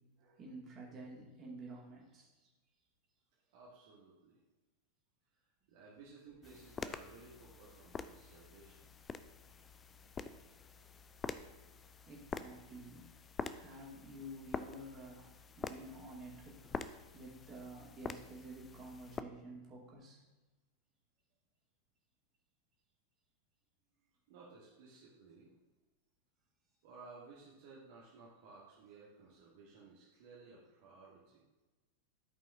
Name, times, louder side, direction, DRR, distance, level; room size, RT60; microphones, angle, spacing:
voice 1, 0.4-2.5 10.0-10.1 12.1-13.1 13.4-16.8 17.1-20.2, right 1 dB, 25° right, -3 dB, 2.3 m, -51 dB
voice 2, 3.5-4.4 5.3-8.9 10.1-11.0 24.3-25.5 26.8-31.4, right 4 dB, 50° right, -5 dB, 1.5 m, -58 dB
sound 1, 6.4-19.2, left 5 dB, 20° left, 0.4 m, -47 dB
13.0 x 5.4 x 2.7 m, 1.2 s
figure-of-eight pair, 90°, 0 cm